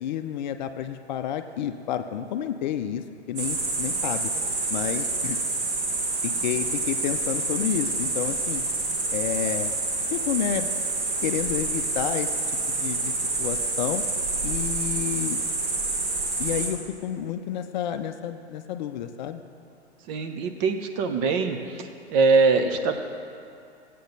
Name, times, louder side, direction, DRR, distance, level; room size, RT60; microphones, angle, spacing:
voice 1, 0.0-4.3 4.7-5.4 6.2-8.6 9.1-9.7 10.1-10.7 11.2-12.3 12.7-13.1 13.4-14.0 14.4-15.4 16.4-19.4, left 10 dB, 40° left, 8 dB, 0.6 m, -30 dB
sound 1, 3.4-16.7, right 3 dB, 50° right, 2.4 m, -28 dB
voice 2, 20.1-21.6 22.1-23.0, right 4 dB, 35° right, 6 dB, 0.9 m, -22 dB
16.0 x 8.4 x 4.0 m, 2.4 s
figure-of-eight pair, 110°, 34 cm